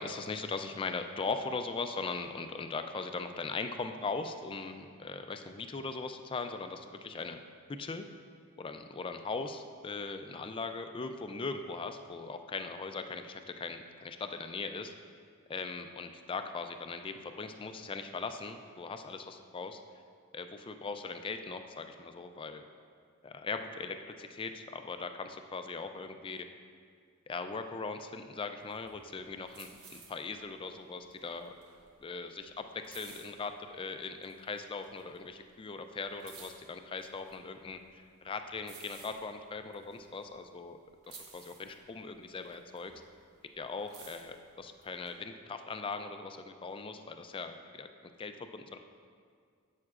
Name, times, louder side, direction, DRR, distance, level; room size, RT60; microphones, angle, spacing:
voice 1, 0.0-7.4 7.7-8.0 8.6-14.9 15.5-19.8 20.3-22.6 23.2-26.5 27.3-31.5 32.0-40.8 41.1-42.9 43.6-47.9 48.2-48.8, left 4 dB, 25° left, 7 dB, 0.3 m, -40 dB
sound 1, 28.6-33.9 34.2-35.5 35.8-40.7 41.0-43.3 43.6-45.1, right 5 dB, 75° right, 1.2 m, -55 dB
10.5 x 7.7 x 2.4 m, 2.1 s
head